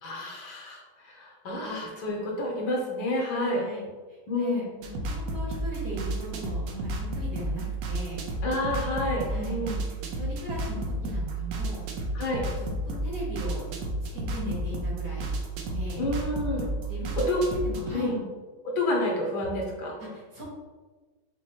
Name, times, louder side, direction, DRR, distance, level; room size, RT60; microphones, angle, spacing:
voice 1, 0.0-3.6 4.3-4.6 8.4-9.8 12.1-12.4 16.0-16.7 17.2-17.4 17.9-18.2 18.8-19.9, left 1 dB, 75° left, -1 dB, 1.6 m, -29 dB
voice 2, 3.3-8.2 9.3-11.8 12.4-12.7 13.0-13.7 14.1-15.3 15.7-16.0 16.9-18.2 20.0-20.4, equal, 50° right, -4 dB, 1.3 m, -39 dB
sound 1, 4.8-17.9, right 1 dB, 70° right, 1.2 m, -32 dB
6.0 x 2.6 x 2.9 m, 1.4 s
omnidirectional pair, 2.2 m